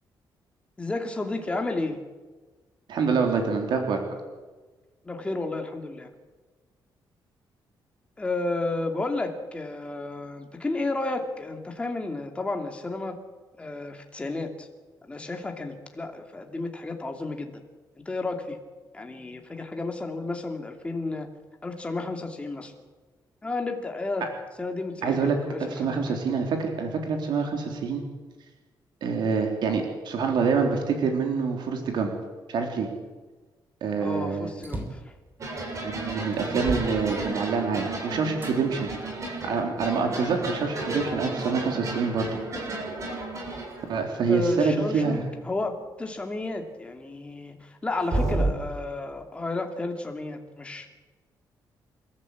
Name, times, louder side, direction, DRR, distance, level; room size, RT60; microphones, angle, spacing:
voice 1, 0.8-2.0 5.0-6.1 8.2-13.2 13.6-14.7 15.0-17.6 18.0-18.6 18.9-21.3 21.6-22.7 23.4-24.3 24.6-26.2 34.0-35.1 44.3-50.9, left 2 dB, 15° left, 3 dB, 2.7 m, -32 dB
voice 2, 2.9-4.0 25.0-25.4 25.7-28.0 29.0-32.1 32.5-32.9 33.8-34.5 35.8-38.9 39.4-42.3 43.9-45.3, right 5 dB, 70° right, 3 dB, 3.6 m, -26 dB
sound 1, 34.6-35.1 35.8-35.9 36.3-37.7 38.4-38.6 39.3-40.3, right 2 dB, 25° right, 3.5 m, -36 dB
sound 2, 35.4-44.2 48.1-48.5, right 2 dB, 40° right, 7.4 m, -32 dB
29.0 x 14.0 x 8.4 m, 1.3 s
wide cardioid pair, 170°, 8 cm